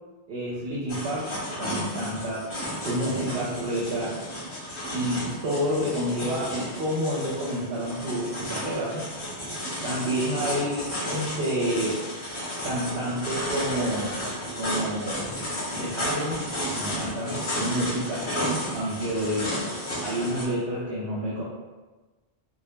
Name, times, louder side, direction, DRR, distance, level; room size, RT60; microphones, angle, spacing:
voice 1, 0.3-2.4 2.8-4.2 4.9-9.1 9.8-12.0 12.6-14.2 14.5-15.3 15.7-16.4 16.7-18.3 18.7-19.5 20.0-21.4, equal, 65° right, -7 dB, 0.8 m, -29 dB
sound 1, 0.9-20.4, equal, 35° left, 0.5 m, -33 dB
2.2 x 2.0 x 3.1 m, 1.2 s
omnidirectional pair, 1.2 m